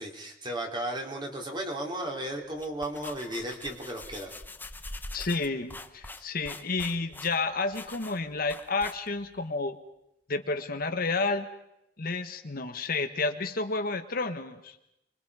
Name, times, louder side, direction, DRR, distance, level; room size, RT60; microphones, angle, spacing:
voice 1, 0.0-4.3 6.2-6.3, right 1 dB, 25° right, 1 dB, 3.2 m, -35 dB
sound 1, 2.4-9.4, left 2 dB, 10° left, 0.7 m, -44 dB
voice 2, 5.1-9.8 10.3-11.5 12.0-14.7, left 3 dB, 50° left, 7 dB, 1.3 m, -30 dB
29.0 x 22.5 x 4.9 m, 0.86 s
head